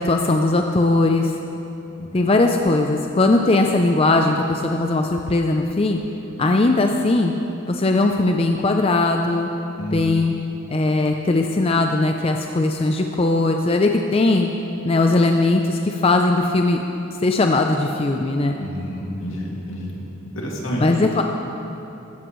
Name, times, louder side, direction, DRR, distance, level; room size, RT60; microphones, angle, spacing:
voice 1, 0.0-1.3 2.1-6.0 6.4-7.3 7.7-9.5 9.9-10.3 10.7-14.5 14.8-16.8 17.2-18.6 20.8-21.2, left 2 dB, 30° left, 3 dB, 0.4 m, -19 dB
voice 2, 18.6-20.0 20.3-20.8, equal, 75° left, -3 dB, 2.4 m, -29 dB
15.5 x 14.0 x 3.1 m, 2.9 s
head